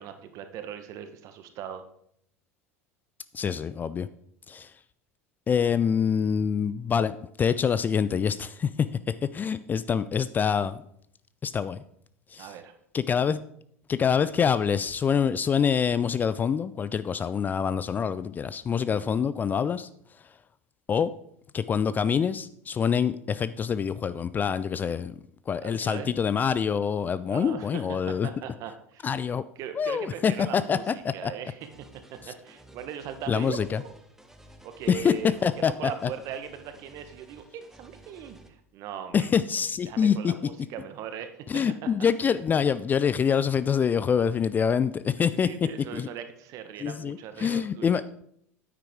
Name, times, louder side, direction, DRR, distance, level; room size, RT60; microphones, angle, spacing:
voice 1, 0.0-1.9 12.4-12.7 25.6-26.1 27.3-27.8 28.2-29.1 29.6-31.7 32.1-33.9 34.6-35.5 35.8-39.3 39.8-41.4 41.8-41.9 45.2-48.0, right 9 dB, 45° right, 9 dB, 1.2 m, -39 dB
voice 2, 3.3-4.1 4.5-4.7 5.5-7.1 7.4-8.9 9.3-10.8 11.4-11.8 12.3-12.5 12.9-13.4 13.9-19.9 20.9-21.1 21.5-25.1 25.5-28.3 29.0-29.4 29.8-31.3 33.3-33.8 34.9-35.1 35.4-35.9 39.1-40.3 41.5-45.5 45.9-46.1 46.8-48.0, left 7 dB, 25° left, 15 dB, 0.3 m, -25 dB
sound 1, 31.6-38.5, right 1 dB, 5° right, 1.1 m, -54 dB
9.6 x 9.0 x 3.6 m, 0.70 s
figure-of-eight pair, 75°, 8 cm